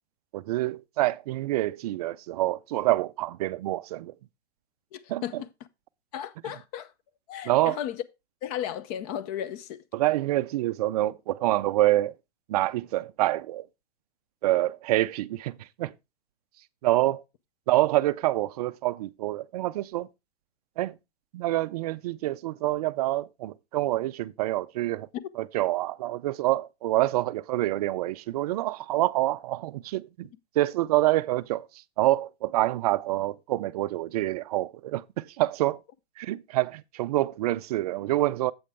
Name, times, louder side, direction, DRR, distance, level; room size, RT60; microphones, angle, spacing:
voice 1, 0.3-4.1 5.1-5.2 7.5-7.8 9.9-12.1 12.5-13.7 14.4-15.9 16.8-17.2 17.7-20.1 20.8-21.0 21.3-25.1 25.4-30.3 30.6-31.7 32.0-35.8 36.2-38.5, right 16 dB, 35° right, 0.4 m, -26 dB
voice 2, 4.9-5.5 6.1-6.9 7.3-8.0 8.4-9.8, left 10 dB, 35° left, 0.7 m, -34 dB
8.4 x 7.8 x 3.4 m
hypercardioid pair, 140°, 34 cm